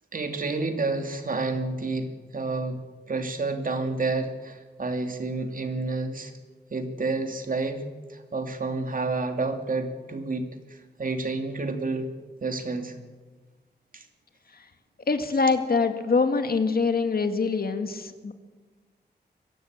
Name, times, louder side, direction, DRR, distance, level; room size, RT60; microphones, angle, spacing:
voice 1, 0.1-6.3 6.7-7.8 8.1-12.1 12.4-13.0 13.9-14.0, right 3 dB, 50° right, 6 dB, 2.7 m, -30 dB
voice 2, 15.1-18.3, left 4 dB, 55° left, 7 dB, 2.1 m, -24 dB
23.0 x 16.0 x 8.9 m, 1.3 s
wide cardioid pair, 135°, 18 cm